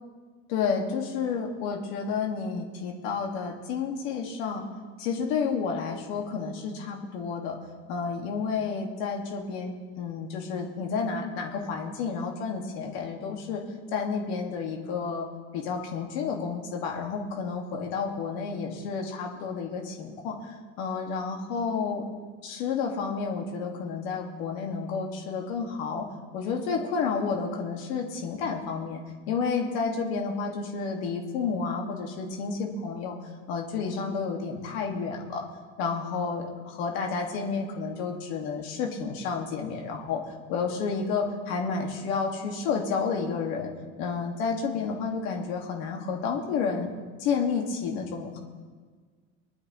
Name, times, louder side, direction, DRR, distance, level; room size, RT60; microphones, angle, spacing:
voice 1, 0.5-4.6 5.0-7.6 7.9-13.6 13.9-15.3 15.5-22.0 22.4-26.1 26.3-29.0 29.3-33.1 33.5-35.4 35.8-40.2 40.5-43.7 44.0-46.9 47.2-48.4, left 5 dB, 90° left, 1 dB, 2.0 m, -30 dB
20.0 x 11.5 x 3.1 m, 1.5 s
cardioid pair, 135°, 31 cm